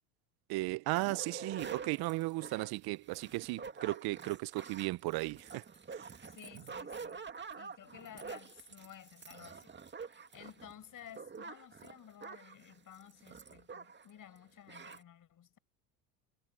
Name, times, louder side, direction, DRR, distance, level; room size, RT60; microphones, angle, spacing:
voice 1, 0.5-6.1, right 21 dB, 55° right, 0.8 m, -36 dB
sound 1, 0.9-14.1 14.4-14.5 14.7-15.0, right 5 dB, 25° right, 2.4 m, -48 dB
voice 2, 6.2-7.3 7.5-9.7 10.3-15.6, left 10 dB, 45° left, 6.7 m, -54 dB
hypercardioid pair, 85°, 45 cm